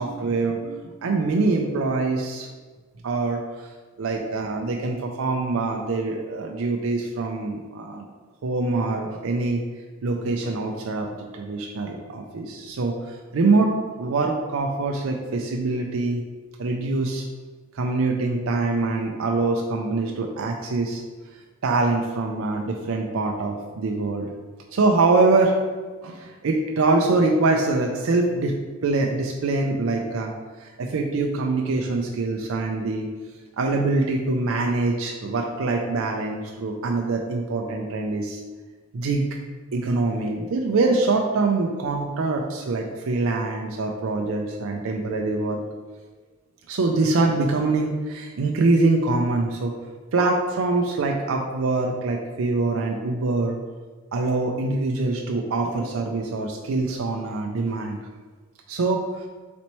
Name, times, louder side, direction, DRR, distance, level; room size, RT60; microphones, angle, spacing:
voice 1, 0.0-2.5 3.0-3.4 4.0-8.1 8.4-9.6 10.0-11.1 11.3-16.2 16.6-17.2 17.7-21.0 21.6-24.3 24.7-25.6 26.0-30.3 30.6-33.1 33.6-38.4 38.9-39.3 39.7-45.6 46.7-49.7 50.1-53.5 54.1-58.0 58.7-59.3, right 3 dB, 90° right, 1 dB, 0.4 m, -24 dB
4.4 x 4.0 x 3.0 m, 1.4 s
head